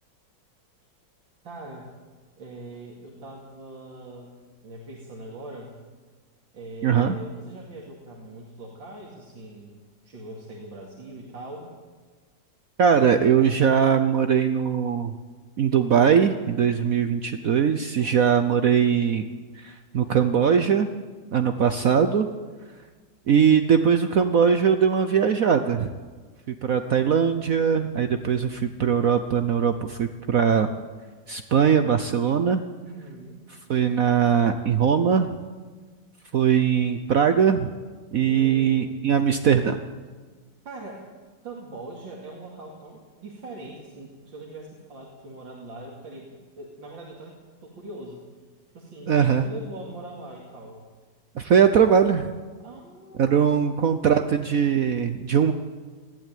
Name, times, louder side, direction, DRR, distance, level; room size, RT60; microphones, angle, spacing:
voice 1, 1.4-1.9 2.4-4.3 4.6-5.8 6.5-11.7 17.9-18.2 32.8-33.4 38.2-39.0 40.6-41.1 41.4-48.2 48.7-50.9 52.6-54.1, right 2 dB, 85° right, -2 dB, 3.3 m, -41 dB
voice 2, 6.8-7.2 12.8-15.1 15.6-19.2 19.6-20.9 21.3-22.3 23.3-25.9 26.6-30.7 31.3-32.6 33.7-35.3 36.3-37.7 38.1-39.8 49.1-49.5 51.4-52.3 53.2-55.5, right 7 dB, 55° right, 8 dB, 1.1 m, -21 dB
20.5 x 15.0 x 9.2 m, 1.4 s
omnidirectional pair, 2.0 m